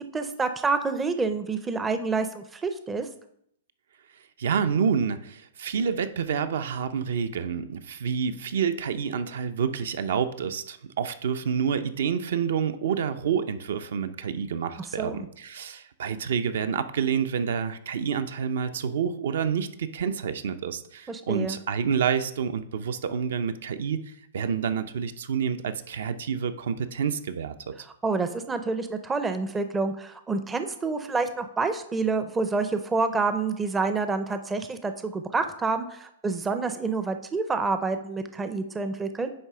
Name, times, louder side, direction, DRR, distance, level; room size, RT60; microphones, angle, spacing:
voice 1, 0.1-3.1 15.0-15.3 21.1-21.6 28.0-39.3, right 4 dB, 10° right, 8 dB, 0.4 m, -28 dB
voice 2, 4.4-24.0 24.3-27.9, right 7 dB, 70° right, 10 dB, 0.6 m, -28 dB
9.6 x 3.4 x 5.5 m, 0.72 s
hypercardioid pair, 160°, 0 cm